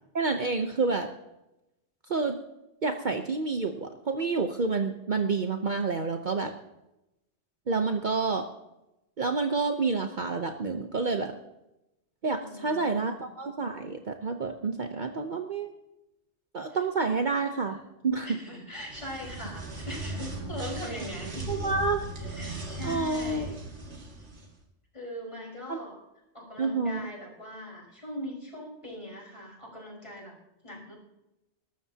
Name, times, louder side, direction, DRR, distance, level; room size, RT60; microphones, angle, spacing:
voice 1, 0.1-1.1 2.1-2.4 2.8-6.5 7.7-8.4 9.2-11.3 12.2-15.7 16.5-17.8 18.0-18.3 21.5-22.1 22.8-23.5 25.7-25.8 26.6-27.1, right 4 dB, 45° right, 5 dB, 1.0 m, -28 dB
voice 2, 12.4-13.2 16.7-17.1 17.7-17.8 18.2-21.5 22.2-23.7 24.2-24.3 24.9-26.0 26.3-30.3 30.6-31.0, left 1 dB, 25° left, -3 dB, 5.3 m, -41 dB
sound 1, 18.8-24.5, right 1 dB, 75° right, 2.3 m, -38 dB
21.0 x 13.0 x 2.9 m, 0.92 s
omnidirectional pair, 1.2 m